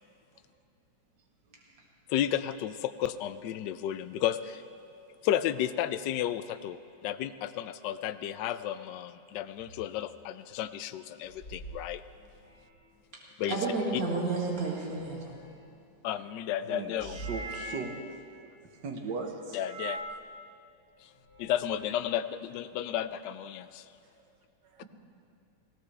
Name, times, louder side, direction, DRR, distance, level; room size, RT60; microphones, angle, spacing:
voice 1, 2.1-4.6 5.2-12.0 13.4-13.6 16.0-17.2 19.5-20.0 21.0-21.1 21.4-23.9, left 11 dB, 75° left, 12 dB, 1.1 m, -32 dB
sound 1, 9.6-9.8 11.2-12.9 14.8-15.9 16.9-18.1 19.5-20.2 21.2-22.0, right 2 dB, 50° left, 3.5 m, -43 dB
voice 2, 13.5-15.3, right 3 dB, 45° right, -4 dB, 2.5 m, -31 dB
voice 3, 16.6-17.9 18.8-19.6 24.7-24.9, right 4 dB, 60° right, 3 dB, 1.7 m, -38 dB
19.0 x 17.5 x 3.4 m, 2.6 s
omnidirectional pair, 2.3 m